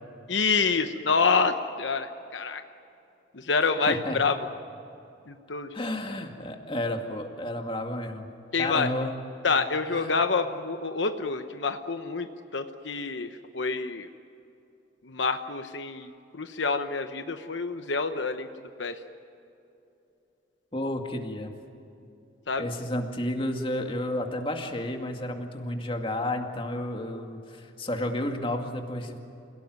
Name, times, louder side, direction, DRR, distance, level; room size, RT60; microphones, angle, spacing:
voice 1, 0.3-2.6 3.3-4.4 5.3-5.7 8.5-8.9 9.4-14.1 15.0-18.5 18.8-19.0 22.5-22.7, left 4 dB, 75° left, 8 dB, 1.0 m, -27 dB
voice 2, 3.9-4.2 5.7-8.3 8.6-9.1 9.9-10.1 20.7-21.5 22.6-29.2, left 1 dB, 30° left, 3 dB, 2.2 m, -31 dB
28.5 x 17.5 x 9.5 m, 2.8 s
head